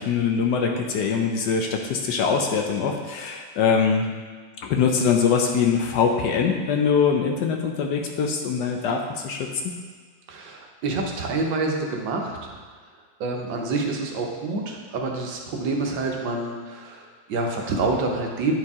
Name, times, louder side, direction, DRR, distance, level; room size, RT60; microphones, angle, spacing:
voice 1, 0.0-4.1 4.6-9.5, left 6 dB, 70° left, 2 dB, 1.1 m, -23 dB
voice 2, 10.3-12.8 13.2-18.5, right 3 dB, 75° right, 1 dB, 1.5 m, -27 dB
9.5 x 4.6 x 3.6 m, 1.5 s
omnidirectional pair, 2.1 m